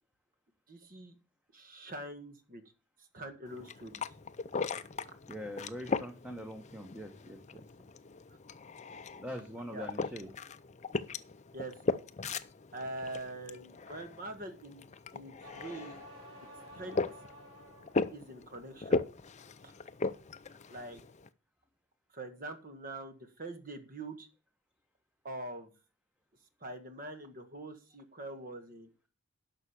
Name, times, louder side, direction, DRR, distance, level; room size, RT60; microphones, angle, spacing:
voice 1, 0.7-1.2 1.5-2.6 3.1-4.0 4.6-4.7 9.7-9.9 11.5-11.7 12.7-14.8 15.1-16.0 16.7-17.0 18.1-19.0 19.6-19.7 20.7-21.0 22.1-24.3 25.2-25.7 26.6-28.9, right 2 dB, 40° right, 9 dB, 1.7 m, -44 dB
sound 1, 3.5-21.3, left 3 dB, 30° left, 0.5 m, -38 dB
voice 2, 5.3-7.6 9.2-10.3, equal, 5° right, 4 dB, 1.2 m, -43 dB
sound 2, 15.4-18.1 18.5-19.1, equal, 60° right, 4.3 m, -52 dB
11.0 x 6.2 x 6.9 m, 0.33 s
head